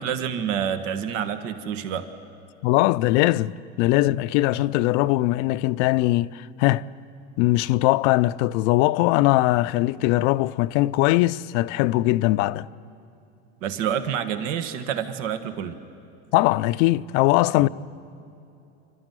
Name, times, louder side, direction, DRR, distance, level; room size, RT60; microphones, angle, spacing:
voice 1, 0.0-2.1 10.0-10.1 13.6-15.8 17.6-17.7, right 8 dB, 80° right, 1.4 m, -28 dB
voice 2, 2.6-3.5 3.8-6.9 7.4-12.7 16.3-17.7, left 17 dB, 70° left, 0.6 m, -20 dB
27.5 x 12.5 x 9.1 m
supercardioid pair, 105°, 37 cm